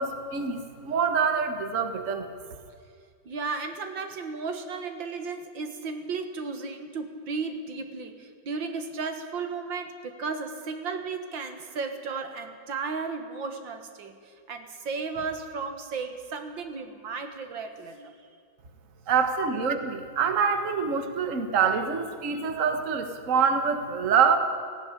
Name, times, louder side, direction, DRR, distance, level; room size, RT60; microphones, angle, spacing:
voice 1, 0.0-2.3 19.1-24.4, right 6 dB, 45° right, 7 dB, 1.7 m, -25 dB
voice 2, 3.3-18.1 19.4-19.5 20.7-20.8, right 4 dB, 80° right, 7 dB, 2.3 m, -34 dB
17.5 x 16.5 x 9.8 m, 2.2 s
omnidirectional pair, 2.0 m